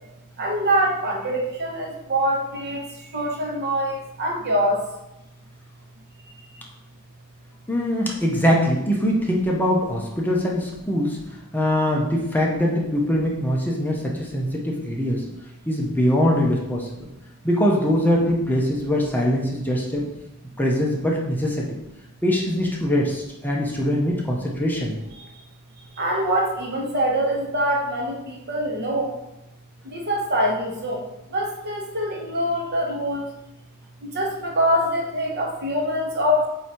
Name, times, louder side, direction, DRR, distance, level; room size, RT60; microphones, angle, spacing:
voice 1, 0.4-4.9 6.5-6.6 25.2-25.3 26.0-29.2 29.8-31.0 31.3-33.3 34.0-36.5, equal, 50° right, 0 dB, 1.1 m, -24 dB
voice 2, 7.7-11.2 11.5-15.2 15.7-16.9 17.4-20.0 20.6-21.7 22.2-25.0, equal, 10° left, -2 dB, 0.8 m, -22 dB
7.9 x 2.8 x 4.4 m, 0.91 s
head